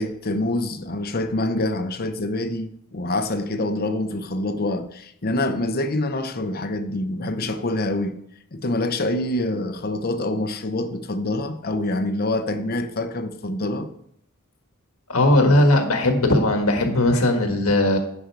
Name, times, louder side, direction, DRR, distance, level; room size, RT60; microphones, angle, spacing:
voice 1, 0.0-8.2 8.5-13.9, left 1 dB, 45° left, 0.8 m, -26 dB
voice 2, 15.1-18.0, left 1 dB, 75° left, 1.5 m, -18 dB
10.5 x 5.4 x 4.7 m
head